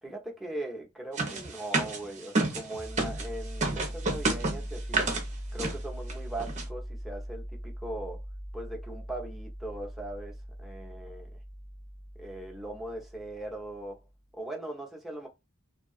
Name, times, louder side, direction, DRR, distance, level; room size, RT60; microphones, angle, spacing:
voice 1, 0.0-5.1 5.5-8.2 8.5-11.4 12.2-14.0 14.3-15.3, right 1 dB, ahead, 0.7 m, -40 dB
sound 1, 1.2-3.3 3.6-5.2 5.6-5.8 6.1-6.2 6.4-6.6, right 3 dB, 35° right, 0.7 m, -29 dB
sound 2, 2.7-14.0, equal, 40° left, 0.9 m, -40 dB
2.7 x 2.3 x 2.3 m
head